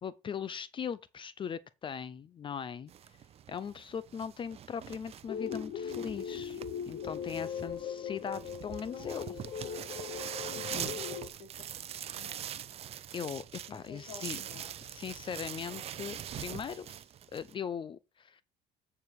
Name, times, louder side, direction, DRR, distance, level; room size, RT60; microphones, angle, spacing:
voice 1, 0.0-2.9 3.5-6.6 6.9-9.2 10.3-10.4 10.7-11.0 13.1-13.4 13.7-14.4 14.8-17.0 17.3-18.4, left 7 dB, 35° left, 0.6 m, -39 dB
sound 1, 2.9-17.5, right 10 dB, 45° right, 0.6 m, -43 dB
sound 2, 5.3-11.3, left 8 dB, 65° left, 1.2 m, -39 dB
voice 2, 8.8-10.1 10.5-11.7 12.2-12.5 13.7-14.7, left 5 dB, 80° left, 2.6 m, -51 dB
9.1 x 4.8 x 4.8 m
cardioid pair, 120°, 15 cm